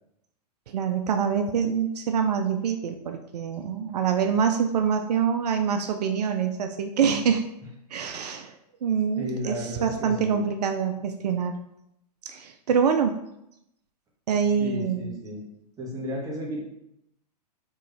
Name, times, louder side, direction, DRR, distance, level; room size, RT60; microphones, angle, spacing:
voice 1, 0.7-7.4 7.9-8.5 8.8-11.5 12.3-13.2 14.3-15.2, right 7 dB, 75° right, 6 dB, 0.5 m, -25 dB
voice 2, 9.2-10.4 14.6-15.5 15.8-16.6, equal, 15° right, -2 dB, 1.2 m, -33 dB
4.4 x 3.0 x 3.2 m, 0.80 s
hypercardioid pair, 115°, 20 cm